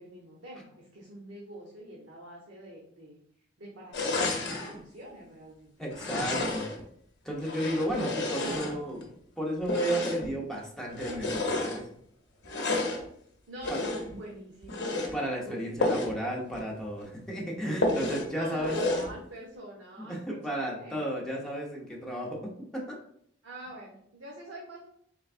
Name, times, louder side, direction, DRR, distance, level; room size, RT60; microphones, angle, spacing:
voice 1, 0.0-3.2 3.6-5.9 13.5-14.9 15.4-16.1 18.3-21.2 23.4-24.9, right 1 dB, 80° right, -4 dB, 0.8 m, -46 dB
sound 1, 3.9-4.7 5.9-6.8 7.4-9.1 9.6-10.4 10.9-11.8 12.4-13.0 13.6-14.2 14.6-15.1 15.8-16.2 16.5-16.6 17.0-17.1 17.8-18.3 18.6-19.1, left 2 dB, 60° left, 0.7 m, -31 dB
voice 2, 5.8-6.7 7.2-9.1 9.4-11.9 13.7-13.8 15.1-18.8 20.0-23.0, right 1 dB, 5° left, -3 dB, 0.8 m, -33 dB
3.9 x 3.3 x 2.5 m, 0.66 s
head